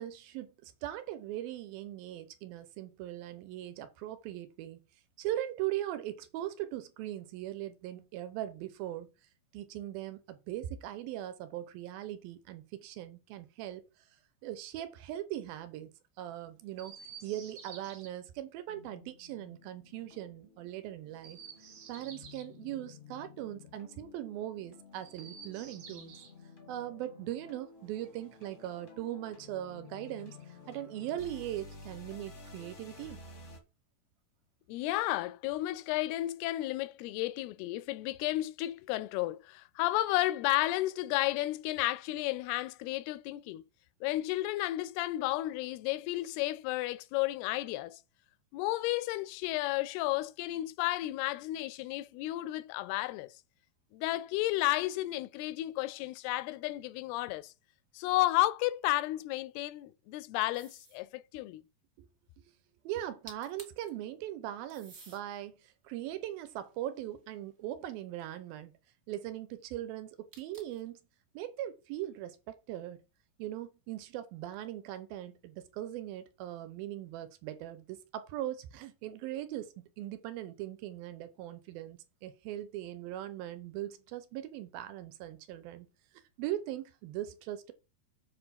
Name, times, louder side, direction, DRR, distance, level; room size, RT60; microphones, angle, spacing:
voice 1, 0.0-4.8 5.2-9.1 9.5-13.8 14.4-15.9 16.2-17.0 17.2-21.4 21.9-26.1 26.7-33.2 62.0-62.1 62.8-65.6 65.8-68.7 69.1-71.0 71.3-73.0 73.4-85.9 86.4-87.7, right 13 dB, 80° right, 2.5 m, -40 dB
Chirp tweet, 16.7-18.1 21.1-22.5 24.9-26.4 27.8-28.9 29.9-30.9, right 6 dB, 55° right, 2.6 m, -52 dB
sound 1, 18.7-33.6, left 3 dB, 45° left, 0.9 m, -53 dB
voice 2, 34.7-43.6 44.0-48.0 48.5-53.3 53.9-57.5 57.9-61.6, left 17 dB, 85° left, 2.6 m, -32 dB
sound 2, 60.5-61.1 63.0-63.1 63.3-63.9 64.7-65.2 65.9-67.4 70.3-70.9, right 3 dB, 30° right, 1.1 m, -53 dB
7.5 x 4.5 x 5.7 m
omnidirectional pair, 4.5 m